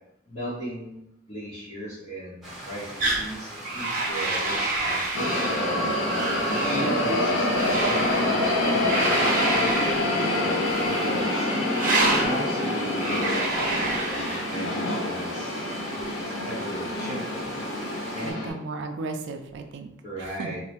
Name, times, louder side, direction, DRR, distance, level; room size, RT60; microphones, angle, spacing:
voice 1, 0.2-1.0 1.3-5.9 6.7-9.1 9.5-10.6 11.0-11.5 12.1-15.6 16.2-17.5 18.1-18.5 20.0-20.6, equal, 40° left, -10 dB, 0.8 m, -36 dB
Stream, 2.4-18.3, right 1 dB, ahead, 0.9 m, -41 dB
sound 1, 3.0-3.3 3.6-5.7 6.0-6.9 7.5-8.3 8.9-10.0 10.6-11.2 11.7-12.3 12.9-14.7, right 2 dB, 45° right, 0.7 m, -28 dB
sound 2, 5.1-18.5, left 1 dB, 75° left, 0.7 m, -26 dB
voice 2, 12.1-12.4 18.2-19.9 20.2-20.6, right 3 dB, 65° right, 6 dB, 0.3 m, -35 dB
3.1 x 2.1 x 2.8 m, 0.83 s
head